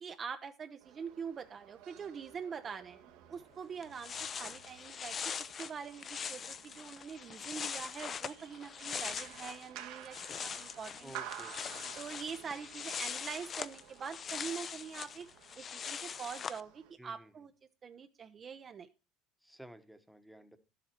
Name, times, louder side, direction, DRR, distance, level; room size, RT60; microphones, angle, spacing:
voice 1, 0.0-3.0 3.3-11.1 12.0-15.3 15.5-17.5 17.8-18.9, right 6 dB, 30° right, 8 dB, 0.6 m, -44 dB
sound 1, 0.8-16.9, right 10 dB, 80° right, 1.5 m, -53 dB
sound 2, 3.5-3.6 3.8-9.7 10.0-16.6, left 7 dB, 35° left, 0.5 m, -42 dB
voice 2, 11.0-11.8 17.0-17.5 19.4-20.6, right 1 dB, ahead, 8 dB, 1.0 m, -53 dB
11.0 x 7.7 x 4.3 m, 0.31 s
cardioid pair, 125°, 0 cm